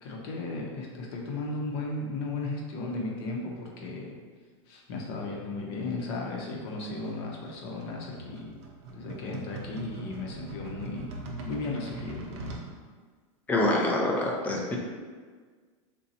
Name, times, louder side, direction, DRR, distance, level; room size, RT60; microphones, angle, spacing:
voice 1, 0.0-4.1 4.7-8.6 8.9-11.1 11.5-12.3, left 2 dB, 50° left, -1 dB, 0.7 m, -35 dB
sound 1, 7.0-12.7, right 2 dB, 60° right, 0.6 m, -41 dB
voice 2, 13.5-14.8, left 1 dB, 10° left, -1 dB, 0.3 m, -26 dB
3.9 x 2.2 x 2.7 m, 1.5 s
supercardioid pair, 155°, 16 cm